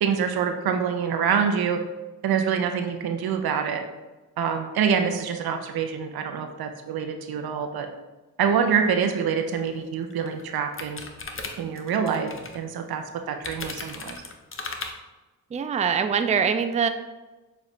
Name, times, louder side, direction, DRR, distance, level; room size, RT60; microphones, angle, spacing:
voice 1, 0.0-1.8 2.2-3.8 4.4-7.9 8.4-11.0 11.6-12.3 12.5-14.2, right 7 dB, 85° right, 6 dB, 0.6 m, -26 dB
sound 1, 9.7-9.8 10.1-12.6 13.4-14.9, left 3 dB, 35° left, 0.7 m, -36 dB
voice 2, 15.5-16.9, right 6 dB, 20° right, 9 dB, 0.3 m, -24 dB
6.7 x 2.4 x 3.1 m, 1.1 s
cardioid pair, 50°, 36 cm